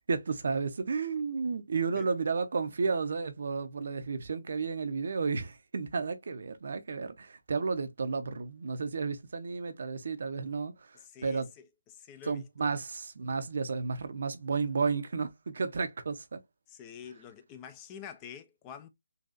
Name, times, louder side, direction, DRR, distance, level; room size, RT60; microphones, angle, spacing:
voice 1, 0.1-11.5 12.2-16.4, right 4 dB, 55° right, 0.6 m, -32 dB
voice 2, 10.9-12.7 16.7-18.9, left 8 dB, 20° left, 0.4 m, -48 dB
4.0 x 2.6 x 2.4 m
figure-of-eight pair, 145°, 0 cm